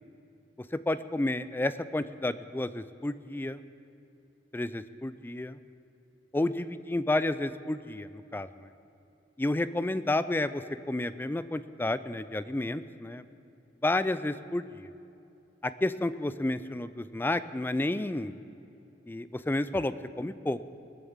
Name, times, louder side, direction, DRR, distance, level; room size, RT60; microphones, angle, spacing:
voice 1, 0.9-3.6 4.5-5.6 6.3-8.5 9.4-13.2 13.8-14.9 15.6-18.3 19.1-20.6, left 2 dB, 10° left, 13 dB, 0.4 m, -31 dB
20.5 x 7.2 x 7.2 m, 2.7 s
head